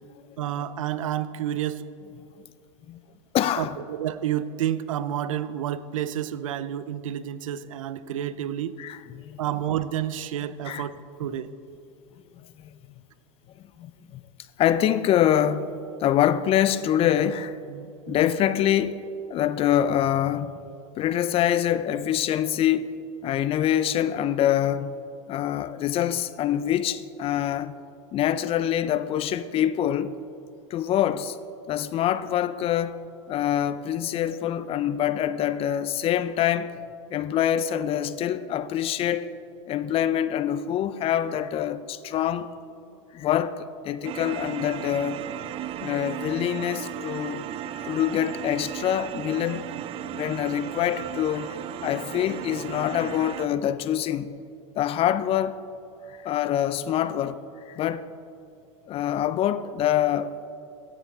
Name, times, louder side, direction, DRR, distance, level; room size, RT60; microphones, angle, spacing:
voice 1, 0.4-1.9 3.6-8.8 9.4-11.5 17.7-18.3, right 11 dB, 80° right, 0.6 m, -30 dB
voice 2, 3.3-3.8 8.8-9.4 10.7-10.8 12.6-12.8 13.8-14.2 14.6-15.7 16.0-17.6 18.1-19.0 19.3-20.6 21.0-22.9 23.2-25.0 25.3-27.7 28.1-30.2 30.7-31.4 31.7-33.0 33.3-36.7 37.1-39.4 39.7-42.5 43.1-45.2 45.8-47.5 47.7-49.7 50.1-54.3 54.8-55.6 56.1-58.1 58.9-60.3, left 10 dB, 35° left, 0.5 m, -25 dB
sound 1, 44.0-53.5, right 10 dB, 35° right, 0.6 m, -35 dB
15.5 x 10.0 x 3.6 m
hypercardioid pair, 105°, 17 cm